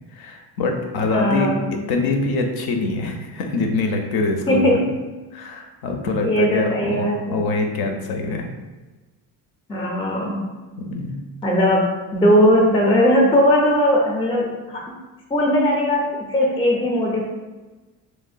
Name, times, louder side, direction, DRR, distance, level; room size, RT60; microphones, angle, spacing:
voice 1, 0.1-4.8 5.3-8.5 10.8-11.1, left 3 dB, 70° left, 3 dB, 0.5 m, -24 dB
voice 2, 1.1-1.7 4.5-5.0 6.2-7.4 9.7-10.4 11.4-14.8 15.3-17.2, equal, 15° left, -1 dB, 0.4 m, -19 dB
3.0 x 2.0 x 2.4 m, 1.2 s
cardioid pair, 100°, 38 cm